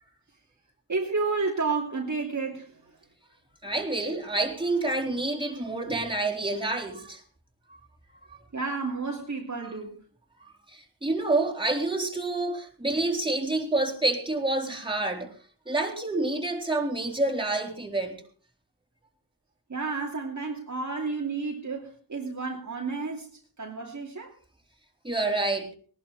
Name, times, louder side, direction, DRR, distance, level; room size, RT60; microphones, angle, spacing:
voice 1, 0.9-2.8 8.5-9.9 19.7-23.3 23.6-24.3, right 4 dB, 45° right, 2.8 m, -31 dB
voice 2, 3.6-7.2 7.7-7.8 8.3-8.4 9.6-9.7 10.4-15.4 15.7-18.2 25.0-25.7, right 2 dB, 10° right, 4.0 m, -28 dB
18.5 x 11.5 x 4.2 m
cardioid pair, 50°, 42 cm